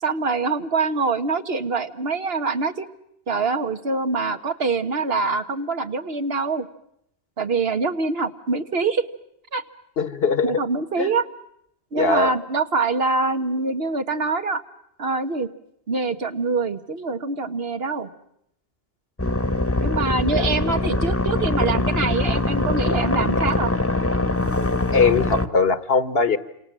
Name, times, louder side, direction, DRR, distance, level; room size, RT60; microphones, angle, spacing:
voice 1, 0.0-2.9 3.3-6.7 7.4-9.0 9.5-9.6 10.4-11.2 11.9-14.6 15.0-15.5 15.9-18.1 19.8-23.7, right 4 dB, 70° right, 9 dB, 1.5 m, -24 dB
voice 2, 10.0-10.6 11.0-11.1 12.0-12.3 20.3-20.9 24.9-26.4, left 4 dB, 70° left, 14 dB, 1.5 m, -21 dB
sound 1, 19.2-25.5, left 2 dB, 15° left, 1.1 m, -23 dB
30.0 x 27.0 x 7.5 m, 0.76 s
omnidirectional pair, 1.1 m